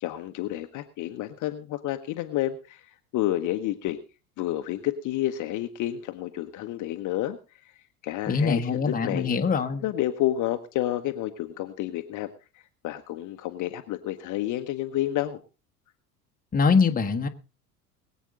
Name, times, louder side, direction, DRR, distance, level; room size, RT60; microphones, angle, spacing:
voice 1, 0.0-4.0 4.4-7.4 7.6-7.7 8.0-9.3 9.8-12.3 12.8-15.4, left 13 dB, 40° left, 1.1 m, -30 dB
voice 2, 8.3-9.8 16.5-17.3, left 5 dB, 20° left, 1.3 m, -23 dB
22.0 x 8.3 x 3.8 m
figure-of-eight pair, 75°, 47 cm